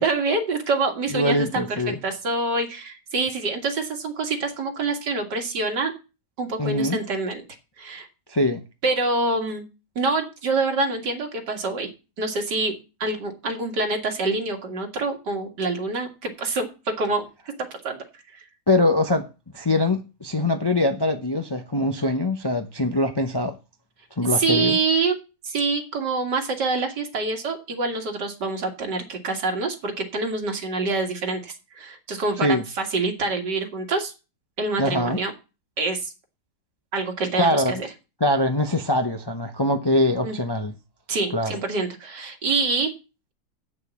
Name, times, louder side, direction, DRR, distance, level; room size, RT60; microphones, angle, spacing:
voice 1, 0.0-1.6 2.0-6.0 6.4-7.4 7.8-8.1 8.8-9.6 10.0-11.9 12.2-17.3 17.7-18.0 18.3-18.4 24.3-25.2 25.4-34.1 34.6-35.3 35.8-36.1 36.9-37.9 40.2-40.4 41.1-42.9, right 3 dB, 80° right, 2.6 m, -26 dB
voice 2, 1.1-2.0 6.6-7.0 8.3-8.6 18.7-19.3 19.5-23.6 24.2-24.8 32.4-32.6 34.8-35.2 37.4-37.7 38.2-40.7 41.3-41.6, left 1 dB, 30° left, 0.4 m, -23 dB
7.8 x 6.7 x 8.3 m
omnidirectional pair, 1.8 m